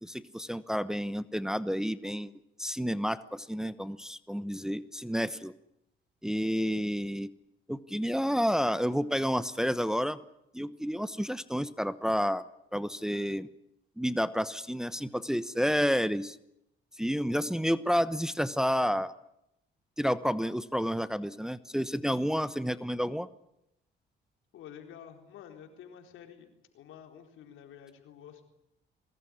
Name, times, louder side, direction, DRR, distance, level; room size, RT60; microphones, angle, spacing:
voice 1, 0.0-2.3 2.6-5.5 6.2-7.3 7.7-10.2 10.5-12.4 12.7-13.5 14.0-16.3 17.0-19.1 20.0-23.3, equal, 5° right, 14 dB, 1.0 m, -30 dB
voice 2, 24.5-26.5 26.7-28.5, left 9 dB, 85° left, 5 dB, 4.1 m, -49 dB
22.0 x 19.0 x 9.9 m, 0.82 s
cardioid pair, 90°, 20 cm